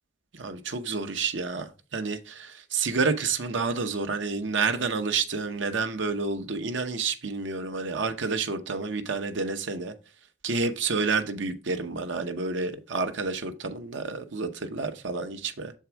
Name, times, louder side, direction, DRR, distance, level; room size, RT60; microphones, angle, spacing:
voice 1, 0.4-9.9 10.4-15.7, right 4 dB, 90° right, 0.9 m, -29 dB
7.0 x 4.6 x 4.5 m
head